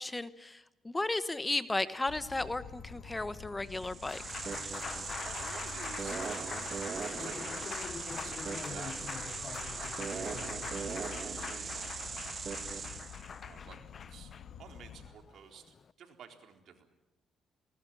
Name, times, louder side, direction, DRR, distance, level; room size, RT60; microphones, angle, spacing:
voice 1, 0.0-4.4, left 2 dB, 15° left, 14 dB, 1.1 m, -35 dB
Insect, 2.1-15.1, left 7 dB, 75° left, 2.2 m, -49 dB
Applause, 3.7-15.9, left 6 dB, 45° left, 0.7 m, -43 dB
sound 1, 3.8-13.3, right 5 dB, 45° right, 1.9 m, -40 dB
voice 2, 4.9-6.6 7.1-9.2 9.7-10.7 11.2-12.5 13.4-13.8 14.1-14.3 14.6-16.9, right 7 dB, 70° right, 4 dB, 4.0 m, -52 dB
21.0 x 19.5 x 8.8 m, 1.0 s
cardioid pair, 90°, 0 cm